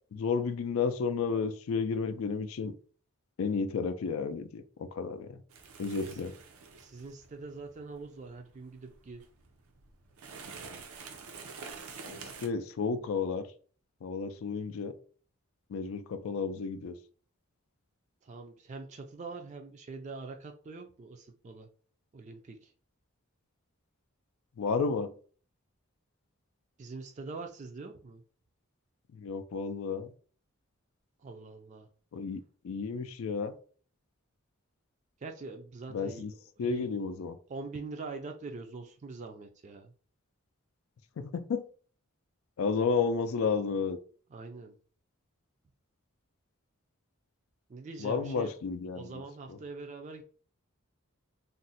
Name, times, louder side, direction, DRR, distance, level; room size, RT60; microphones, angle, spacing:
voice 1, 0.1-2.7 3.4-5.3 5.8-6.3 12.1-13.5 14.0-14.9 15.7-16.9 24.6-25.1 29.1-30.1 32.1-33.5 35.9-36.3 36.6-37.4 41.2-41.6 42.6-44.0 48.0-49.0, left 5 dB, 75° left, 0.4 m, -32 dB
sound 1, 5.5-12.5, right 5 dB, 85° right, 0.6 m, -48 dB
voice 2, 6.8-9.3 16.4-16.5 18.2-21.7 22.1-22.7 26.8-28.2 31.2-31.9 35.2-36.9 37.5-39.9 44.3-44.8 47.7-48.6 48.9-50.2, right 3 dB, 35° right, 0.3 m, -44 dB
2.5 x 2.0 x 3.9 m
head